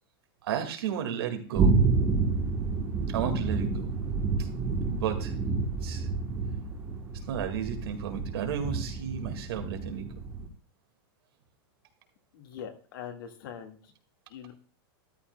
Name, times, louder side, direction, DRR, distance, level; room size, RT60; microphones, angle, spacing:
voice 1, 0.4-1.7 3.1-3.9 4.4-4.5 4.9-5.3 5.8-6.1 7.3-10.0, right 8 dB, 80° right, 4 dB, 1.9 m, -33 dB
sound 1, 1.5-10.5, right 4 dB, 15° right, 1.1 m, -29 dB
voice 2, 12.3-13.8 14.3-14.5, left 8 dB, 60° left, 5 dB, 1.7 m, -42 dB
13.0 x 11.0 x 2.2 m, 0.41 s
supercardioid pair, 170°, 13 cm